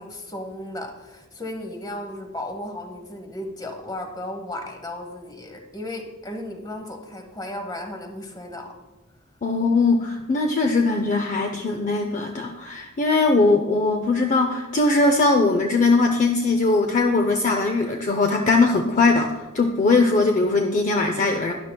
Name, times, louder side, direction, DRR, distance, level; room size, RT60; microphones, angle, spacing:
voice 1, 0.0-8.7, left 1 dB, 20° left, 5 dB, 1.0 m, -35 dB
voice 2, 9.4-21.5, left 3 dB, 40° left, 4 dB, 0.5 m, -20 dB
12.5 x 10.5 x 2.2 m, 1.2 s
head